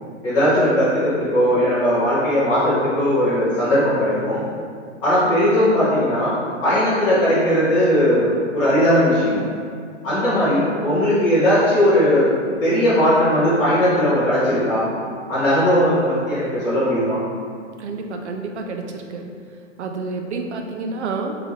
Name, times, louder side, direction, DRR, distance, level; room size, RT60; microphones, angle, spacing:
voice 1, 0.2-4.4 5.0-6.4 6.6-9.4 10.0-12.3 12.6-14.9 15.3-17.2, equal, 10° left, -15 dB, 0.7 m, -18 dB
voice 2, 17.8-19.2 19.8-21.4, right 4 dB, 65° right, 3 dB, 0.6 m, -29 dB
3.6 x 3.5 x 3.1 m, 2.1 s
hypercardioid pair, 155°, 37 cm